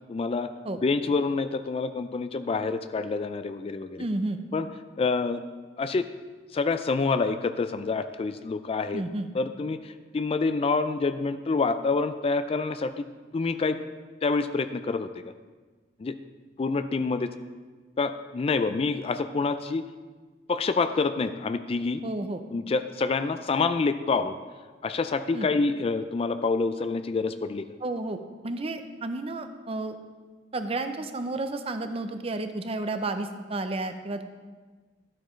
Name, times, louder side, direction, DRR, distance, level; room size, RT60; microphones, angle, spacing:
voice 1, 0.1-0.5 0.8-4.1 4.5-4.7 5.0-5.4 5.8-6.1 6.5-9.0 9.3-13.1 13.3-13.8 14.2-15.2 16.0-16.2 16.6-17.3 18.0-19.8 20.5-22.0 22.5-24.4 24.8-27.7, left 4 dB, 30° left, 10 dB, 0.3 m, -27 dB
voice 2, 4.0-4.4 8.9-9.3 22.0-22.4 25.3-25.5 27.8-28.2 28.4-30.0 30.5-34.2, right 2 dB, 30° right, 8 dB, 0.6 m, -31 dB
12.5 x 8.6 x 3.1 m, 1.4 s
head